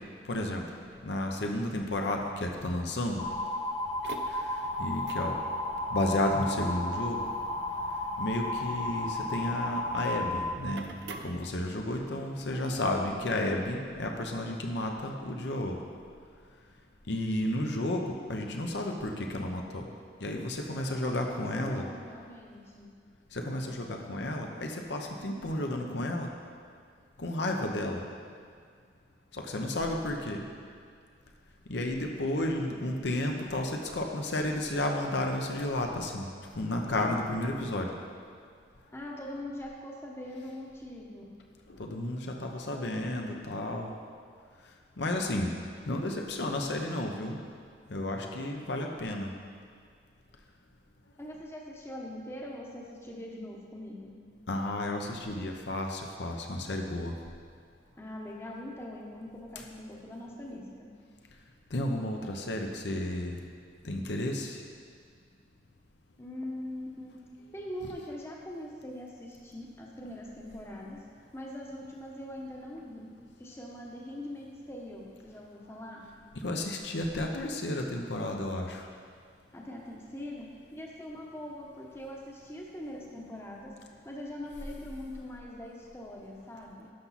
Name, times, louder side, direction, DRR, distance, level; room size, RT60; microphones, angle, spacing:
voice 1, 0.2-0.6 1.0-3.2 4.3-4.4 4.8-5.4 5.9-7.3 8.2-10.9 11.2-15.8 17.1-19.9 20.2-21.9 23.3-26.3 27.2-28.0 29.3-30.4 31.7-36.3 36.5-37.9 41.7-43.9 45.0-45.5 45.9-47.4 47.9-49.3 54.5-57.1 61.7-63.4 63.8-64.6 76.4-78.9, left 1 dB, 70° left, 2 dB, 0.8 m, -32 dB
sound 1, 3.2-10.5, left 1 dB, 40° left, 1.1 m, -33 dB
sound 2, 3.8-12.1, right 3 dB, 70° right, 0.6 m, -49 dB
voice 2, 12.5-13.0 20.8-22.9 38.9-41.3 51.2-54.2 58.0-60.9 66.2-71.1 71.3-73.1 73.4-76.1 79.5-83.8 84.0-86.9, left 1 dB, 15° left, -2 dB, 0.9 m, -42 dB
11.5 x 5.9 x 4.1 m, 2.1 s
head